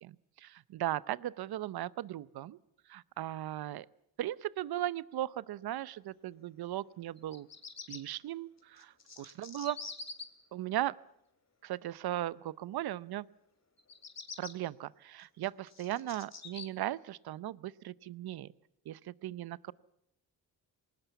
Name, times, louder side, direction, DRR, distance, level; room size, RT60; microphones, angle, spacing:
voice 1, 0.0-2.6 2.9-3.9 4.2-7.5 7.9-9.8 10.5-11.0 11.6-13.3 14.4-18.5 18.9-19.7, right 13 dB, 65° right, 20 dB, 0.7 m, -37 dB
Bird vocalization bird call bird song, 7.2-8.0 8.8-10.2 13.8-14.5 15.2-16.7, left 4 dB, 40° left, 3.0 m, -45 dB
20.5 x 18.5 x 8.2 m, 0.79 s
supercardioid pair, 55°, 41 cm